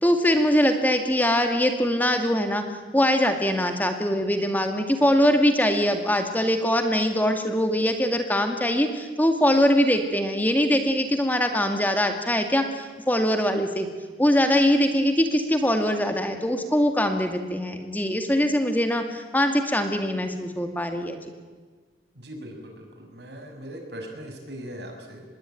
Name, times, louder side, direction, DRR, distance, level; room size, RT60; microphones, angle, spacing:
voice 1, 0.0-2.6 2.9-13.9 14.2-21.3, equal, 10° left, 5 dB, 2.1 m, -22 dB
voice 2, 22.1-25.2, equal, 75° right, 4 dB, 6.4 m, -39 dB
26.0 x 21.5 x 9.2 m, 1.4 s
head